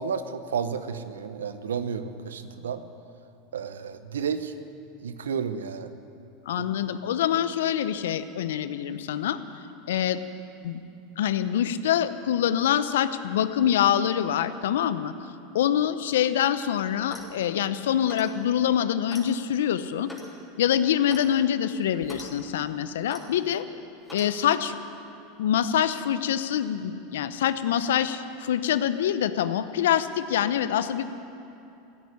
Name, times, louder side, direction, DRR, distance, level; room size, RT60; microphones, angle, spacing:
voice 1, 0.0-2.8 3.5-4.5 5.0-5.9 6.5-6.7, right 6 dB, 85° right, 11 dB, 0.8 m, -31 dB
voice 2, 6.5-9.4 9.9-10.2 10.6-10.8 11.2-15.1 15.5-20.1 20.6-23.6 24.1-24.8 25.4-31.0, left 10 dB, 80° left, 13 dB, 0.7 m, -25 dB
Clock, 17.0-17.4 18.1-18.4 19.1-19.3 20.1-20.3 21.1-21.3 22.0-22.3 23.1-23.3 24.1-24.3, left 1 dB, 5° left, 3.4 m, -42 dB
15.0 x 9.5 x 9.8 m, 2.7 s
hypercardioid pair, 95°, 0 cm